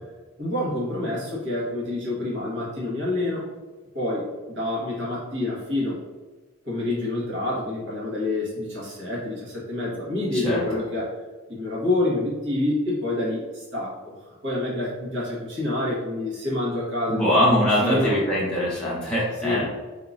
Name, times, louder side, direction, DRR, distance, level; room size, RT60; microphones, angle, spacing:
voice 1, 0.4-3.5 3.9-6.0 6.6-11.2 11.5-14.1 14.4-18.2 19.4-19.7, left 2 dB, 55° right, -6 dB, 1.4 m, -27 dB
voice 2, 17.1-19.7, equal, 5° left, -7 dB, 1.2 m, -22 dB
3.7 x 2.9 x 2.5 m, 1.3 s
head